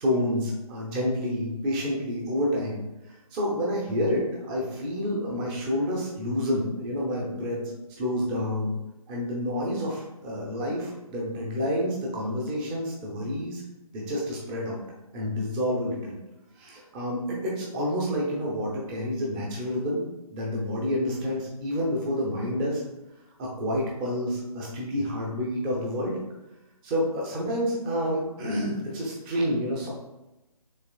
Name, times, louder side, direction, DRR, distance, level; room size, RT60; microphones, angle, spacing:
voice 1, 0.0-7.7 8.0-8.7 9.1-13.6 13.9-14.8 15.1-16.2 16.6-20.0 20.3-22.8 23.4-26.2 26.8-29.9, equal, 15° right, -3 dB, 0.7 m, -29 dB
6.5 x 3.1 x 2.4 m, 0.96 s
figure-of-eight pair, 150°, 19 cm